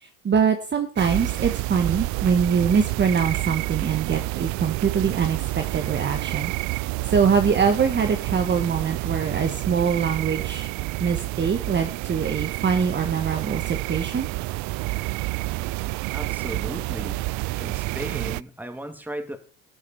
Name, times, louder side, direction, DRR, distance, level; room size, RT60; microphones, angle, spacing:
voice 1, 0.0-6.5 7.1-10.7 11.0-14.3, right 6 dB, 25° right, 6 dB, 1.5 m, -23 dB
sound 1, 1.0-18.4, right 21 dB, 45° right, 0.5 m, -29 dB
voice 2, 16.1-17.2 17.6-19.4, right 1 dB, 5° right, 7 dB, 2.5 m, -35 dB
18.5 x 6.5 x 4.4 m, 0.42 s
hypercardioid pair, 80°, 40 cm